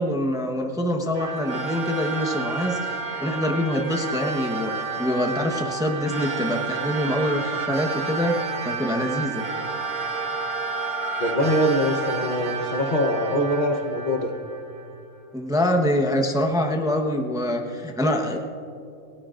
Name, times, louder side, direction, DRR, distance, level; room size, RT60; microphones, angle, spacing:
voice 1, 0.0-8.4 8.6-9.4 15.3-18.4, left 1 dB, 5° right, 2 dB, 0.9 m, -25 dB
sound 1, 1.1-14.9, right 4 dB, 90° right, 1.8 m, -30 dB
voice 2, 11.2-14.3, equal, 35° left, 1 dB, 1.0 m, -23 dB
28.0 x 17.5 x 2.5 m, 2.6 s
omnidirectional pair, 1.5 m